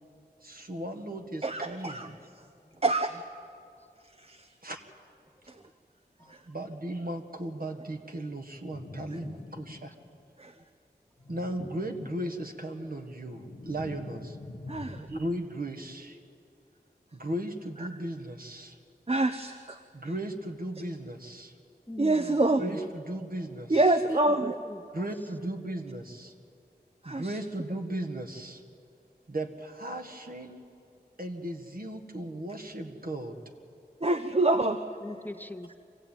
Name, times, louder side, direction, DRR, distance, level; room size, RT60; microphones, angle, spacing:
voice 1, 0.4-2.2 4.6-4.8 6.2-9.9 11.3-14.4 15.1-16.2 17.1-18.8 19.9-21.5 22.6-23.8 24.1-24.2 24.9-26.3 27.0-28.6 29.3-30.6 31.2-33.4, right 1 dB, 60° right, 4 dB, 1.8 m, -36 dB
voice 2, 1.4-2.1 2.8-3.1 4.3-4.4 10.4-10.5 14.7-15.1 19.1-19.8 22.0-22.6 23.7-24.5 27.0-27.3 34.0-34.8, right 2 dB, 35° right, 8 dB, 0.8 m, -26 dB
sound 1, 8.6-10.2 11.2-12.7 13.0-15.4, left 2 dB, 65° left, 1.3 m, -45 dB
voice 3, 21.9-22.4 24.4-25.1 35.0-35.8, left 1 dB, 10° left, 10 dB, 0.7 m, -41 dB
25.0 x 16.0 x 9.1 m, 2.5 s
wide cardioid pair, 45°, 17 cm